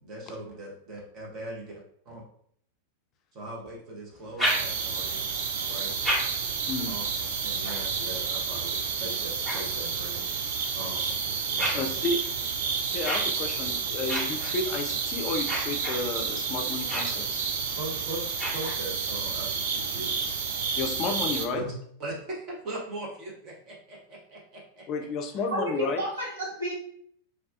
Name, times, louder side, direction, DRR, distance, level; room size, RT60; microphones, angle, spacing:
voice 1, 0.0-1.7 2.1-2.2 3.3-5.3 5.6-5.9 6.8-10.2 10.7-11.2 11.5-12.0 17.8-20.1 21.5-21.7 22.0-24.8, right 1 dB, 35° right, -3 dB, 0.9 m, -40 dB
sound 1, 4.1-5.1 5.7-10.3 10.9-19.2, equal, 5° right, 1.0 m, -36 dB
sound 2, 4.4-21.5, right 6 dB, 55° right, 0.3 m, -30 dB
voice 2, 11.7-12.2 12.9-17.4 20.8-21.6 24.9-26.0, left 3 dB, 35° left, 6 dB, 0.4 m, -31 dB
voice 3, 25.5-26.7, equal, 75° right, -6 dB, 1.1 m, -31 dB
2.3 x 2.2 x 2.4 m, 0.64 s
figure-of-eight pair, 90°, 0 cm